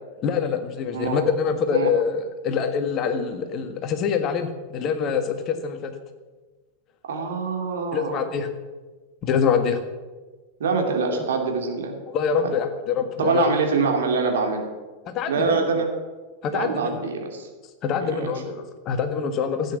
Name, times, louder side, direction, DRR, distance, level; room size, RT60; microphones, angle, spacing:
voice 1, 0.2-5.9 7.9-8.5 9.2-9.8 11.1-11.2 12.1-13.6 15.0-15.9 16.4-17.0 17.8-19.8, left 6 dB, 35° left, 8 dB, 1.5 m, -25 dB
voice 2, 0.9-1.3 1.7-1.9 7.1-8.2 10.6-12.0 12.4-12.5 13.2-14.7 15.3-15.9 16.5-17.5 18.0-18.3, right 5 dB, 60° right, 2 dB, 2.7 m, -24 dB
15.5 x 8.5 x 7.2 m, 1.3 s
figure-of-eight pair, 90°, 0 cm